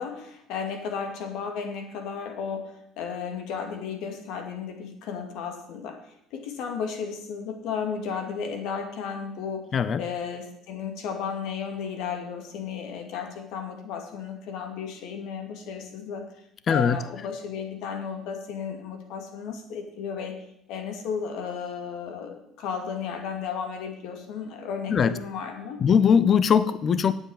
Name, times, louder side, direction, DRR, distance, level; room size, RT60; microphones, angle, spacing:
voice 1, 0.0-2.7 3.0-6.0 6.3-9.7 10.0-16.2 16.7-20.4 20.7-25.8, left 6 dB, 75° left, 4 dB, 2.3 m, -34 dB
voice 2, 16.7-17.0 24.9-25.1 25.8-27.1, left 7 dB, 35° left, 15 dB, 0.6 m, -20 dB
9.0 x 7.7 x 9.0 m, 0.78 s
cardioid pair, 140°, 0 cm